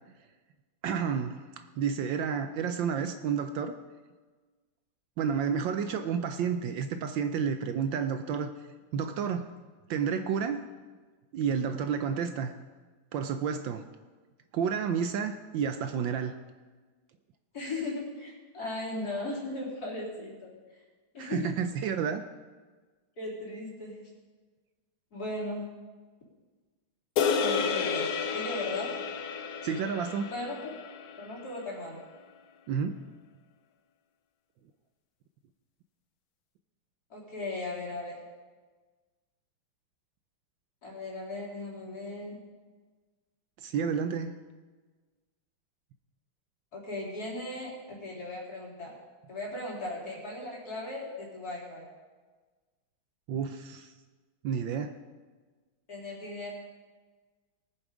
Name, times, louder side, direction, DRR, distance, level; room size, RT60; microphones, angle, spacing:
voice 1, 0.8-1.4 1.8-3.7 5.2-8.5 8.9-9.5 9.9-10.6 11.3-12.5 13.1-13.8 14.5-16.3 21.2-22.2 29.6-30.3 32.7-33.0 43.6-44.4 53.3-53.9 54.4-54.9, right 7 dB, 70° right, 8 dB, 1.3 m, -30 dB
voice 2, 17.5-20.5 21.1-21.5 23.2-24.0 25.1-25.7 27.4-28.9 30.3-30.7 31.2-32.0 37.1-38.2 40.8-42.4 46.7-49.0 49.3-51.9 55.9-56.5, left 2 dB, 45° left, -3 dB, 3.4 m, -37 dB
sound 1, 27.2-31.6, left 6 dB, 65° left, 1.0 m, -31 dB
19.5 x 7.2 x 5.1 m, 1.4 s
omnidirectional pair, 2.3 m